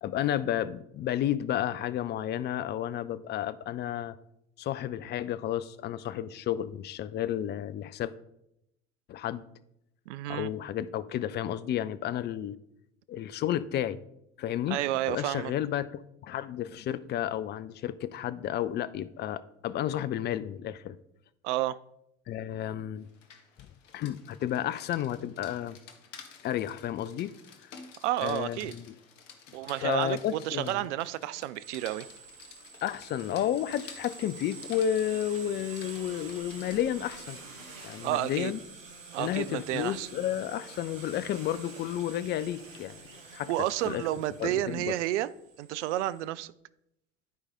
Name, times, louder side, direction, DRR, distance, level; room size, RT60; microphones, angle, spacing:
voice 1, 0.0-4.1 4.6-8.1 9.1-9.4 10.3-12.6 13.1-14.0 14.4-14.8 15.1-15.9 16.2-21.0 22.3-23.1 23.9-25.8 26.4-27.3 28.2-28.9 29.8-30.8 32.8-37.4 37.8-38.6 39.2-43.0 43.3-43.5 43.9-44.0 44.4-45.0, left 11 dB, 30° left, 0.4 m, -32 dB
voice 2, 10.1-10.5 14.7-15.5 21.4-21.8 28.0-28.7 29.5-32.1 38.0-38.5 39.1-40.1 43.5-45.3 45.6-46.5, right 14 dB, 65° right, 0.5 m, -31 dB
Rain, 23.0-38.1, left 6 dB, 70° left, 1.0 m, -52 dB
sound 1, 31.6-46.2, right 4 dB, 85° right, 1.2 m, -48 dB
11.0 x 4.7 x 3.6 m
figure-of-eight pair, 70°, 38 cm